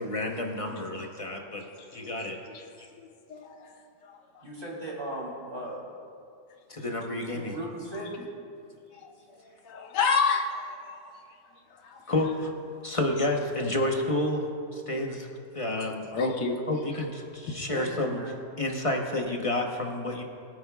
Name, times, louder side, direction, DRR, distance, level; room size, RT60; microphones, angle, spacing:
voice 1, 0.0-1.6 1.9-2.4 2.8-2.9 6.7-7.6 12.1-12.5 12.8-14.5 14.7-15.3 15.5-18.2 18.6-20.2, left 1 dB, 30° left, 1 dB, 0.7 m, -30 dB
voice 2, 3.0-3.7 4.0-4.4 9.0-9.1 9.6-10.6 11.0-11.1 11.8-12.0 16.1-16.6, left 5 dB, 90° left, 4 dB, 1.6 m, -29 dB
voice 3, 4.4-5.8 7.3-8.6 17.6-18.4, right 1 dB, 30° right, -5 dB, 3.0 m, -37 dB
22.0 x 9.4 x 2.3 m, 2.4 s
omnidirectional pair, 1.8 m